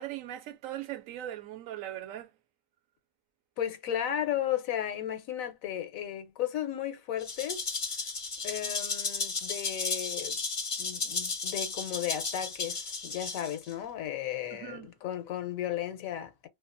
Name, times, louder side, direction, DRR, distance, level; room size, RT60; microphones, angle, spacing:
voice 1, 0.0-2.3 14.5-14.9, right 13 dB, 80° right, 1.0 m, -39 dB
voice 2, 3.6-7.7 8.4-10.4 10.8-16.5, left 11 dB, 85° left, 1.1 m, -34 dB
Rattle (instrument), 7.2-13.7, left 4 dB, 40° left, 0.4 m, -34 dB
2.7 x 2.2 x 2.4 m
omnidirectional pair, 1.4 m